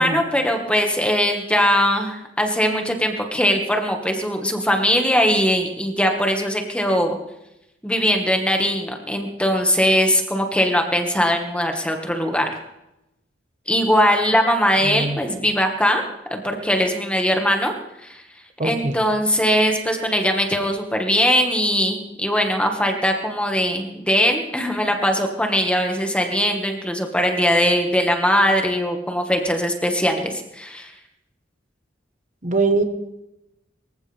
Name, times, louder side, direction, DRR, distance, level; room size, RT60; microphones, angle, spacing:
voice 1, 0.0-7.2 7.8-12.5 13.7-16.0 16.3-17.7 18.0-18.2 18.6-30.9, equal, 5° left, 3 dB, 1.8 m, -20 dB
voice 2, 14.9-15.2 18.6-19.0 32.4-32.8, right 3 dB, 40° right, 6 dB, 1.3 m, -22 dB
24.5 x 15.5 x 3.5 m, 0.91 s
head